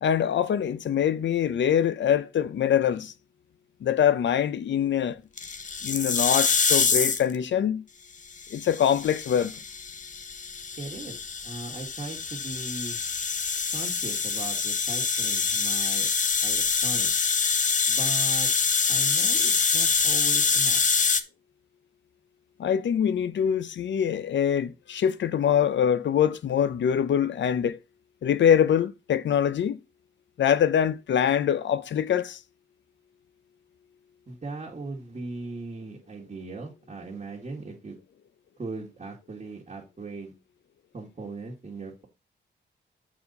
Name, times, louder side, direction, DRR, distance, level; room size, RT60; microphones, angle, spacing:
voice 1, 0.0-3.1 3.8-5.2 5.8-7.8 8.5-9.6 22.6-27.8 28.2-29.8 30.4-32.4, left 9 dB, 75° left, 0.7 m, -24 dB
sound 1, 5.4-7.3 8.4-21.2, left 5 dB, 40° left, 0.9 m, -25 dB
voice 2, 10.8-11.2 11.4-13.0 13.7-16.1 16.4-17.1 17.9-18.5 18.9-20.8 34.3-37.9 38.6-40.3 40.9-42.1, right 3 dB, 40° right, 2.0 m, -38 dB
7.2 x 4.3 x 5.2 m
cardioid pair, 95°, 19 cm